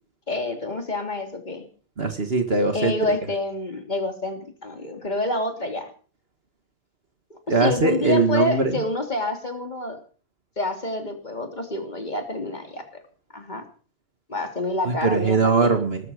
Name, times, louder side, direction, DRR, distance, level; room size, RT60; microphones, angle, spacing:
voice 1, 0.3-1.7 2.7-5.9 7.3-10.0 10.6-13.0 13.3-13.6 14.3-15.7, left 2 dB, 40° left, 5 dB, 3.3 m, -28 dB
voice 2, 2.0-2.9 7.5-8.7 14.9-16.1, right 3 dB, 60° right, 6 dB, 2.0 m, -21 dB
19.5 x 14.0 x 5.1 m, 0.41 s
omnidirectional pair, 1.1 m